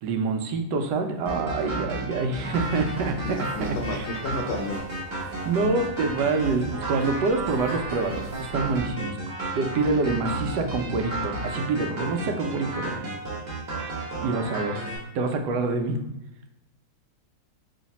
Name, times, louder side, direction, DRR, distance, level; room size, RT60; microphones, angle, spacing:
voice 1, 0.0-4.1 5.4-9.2 9.5-13.0 14.2-14.8 15.1-16.0, right 3 dB, 80° right, 5 dB, 1.2 m, -26 dB
sound 1, 1.3-15.0, right 2 dB, 35° right, 0.8 m, -33 dB
sound 2, 2.4-8.8, right 1 dB, 55° right, 0.5 m, -43 dB
voice 2, 3.2-4.8 14.1-14.6, left 2 dB, 70° left, 2 dB, 1.1 m, -33 dB
3.2 x 2.8 x 4.0 m, 0.92 s
omnidirectional pair, 1.8 m